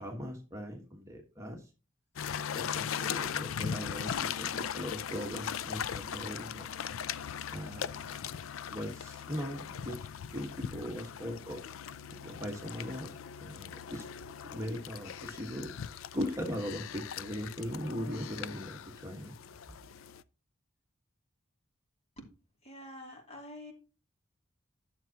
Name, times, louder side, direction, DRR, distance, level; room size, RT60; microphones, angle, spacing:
voice 1, 0.0-1.7 2.3-6.7 7.5-8.1 8.7-11.6 12.2-14.0 14.4-15.7 16.1-19.3 19.7-19.8, equal, 15° right, 1 dB, 1.4 m, -39 dB
sound 1, 2.2-20.2, left 8 dB, 80° left, 0.4 m, -39 dB
voice 2, 22.6-23.7, left 1 dB, 35° left, 1 dB, 2.7 m, -47 dB
11.0 x 7.1 x 2.9 m, 0.31 s
head